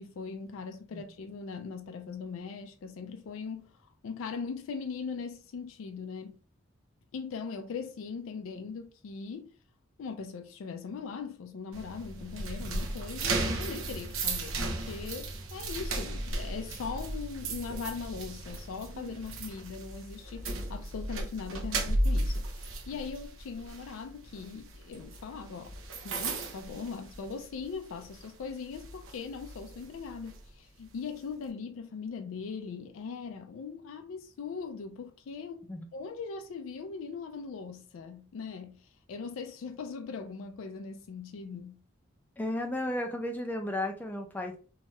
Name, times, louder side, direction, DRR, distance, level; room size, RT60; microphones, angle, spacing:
voice 1, 0.0-6.4 7.1-9.5 10.0-25.8 26.0-41.8, left 5 dB, 90° left, 0.4 m, -40 dB
sound 1, 11.7-27.6 28.0-28.3 28.7-30.4, right 2 dB, 85° right, 0.6 m, -35 dB
voice 2, 42.4-44.6, left 1 dB, 10° left, 0.4 m, -34 dB
2.7 x 2.2 x 3.0 m
head